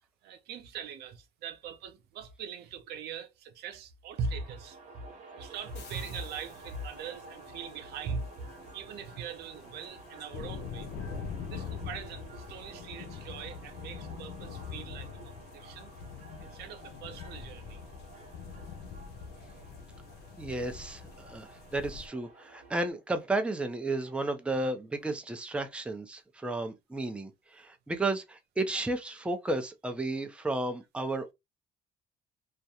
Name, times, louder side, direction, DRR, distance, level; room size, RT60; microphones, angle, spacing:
voice 1, 0.2-4.8 5.3-10.9 11.5-15.9 16.4-17.8, right 5 dB, 75° right, 0.5 m, -41 dB
sound 1, 4.2-22.9, right 3 dB, 45° right, 0.9 m, -51 dB
sound 2, 5.5-22.1, left 6 dB, 70° left, 0.4 m, -45 dB
sound 3, 5.7-7.3, left 6 dB, 90° left, 0.9 m, -54 dB
voice 2, 20.4-31.3, right 2 dB, 5° right, 0.5 m, -33 dB
2.3 x 2.1 x 2.8 m
cardioid pair, 110°, 17 cm